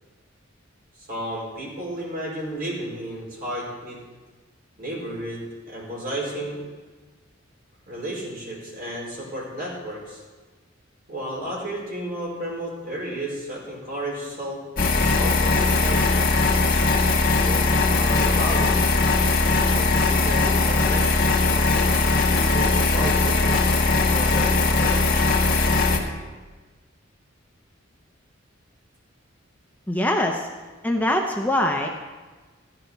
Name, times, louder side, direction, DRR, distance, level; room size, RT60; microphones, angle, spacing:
voice 1, 0.9-4.0 4.8-6.6 7.9-10.2 11.1-14.6 14.9-16.3 17.4-18.7 19.7-25.4, right 1 dB, 50° right, -5 dB, 4.8 m, -33 dB
sound 1, 14.8-26.0, left 3 dB, 50° left, 1.4 m, -20 dB
voice 2, 29.9-30.5 30.8-31.9, left 1 dB, 10° left, 2 dB, 0.6 m, -23 dB
14.5 x 11.0 x 3.9 m, 1.3 s
head